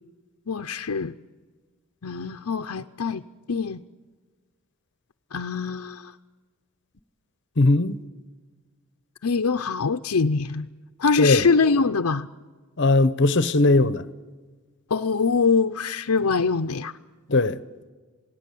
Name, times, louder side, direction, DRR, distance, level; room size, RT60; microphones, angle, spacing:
voice 1, 0.5-1.1 2.0-3.2 3.5-3.8 5.3-6.1 9.2-10.7 11.0-12.3 14.9-16.9, left 5 dB, 85° left, 0.6 m, -23 dB
voice 2, 7.6-8.0 11.2-11.4 12.8-14.0 17.3-17.6, left 2 dB, 55° left, 0.9 m, -19 dB
27.5 x 18.5 x 8.4 m
head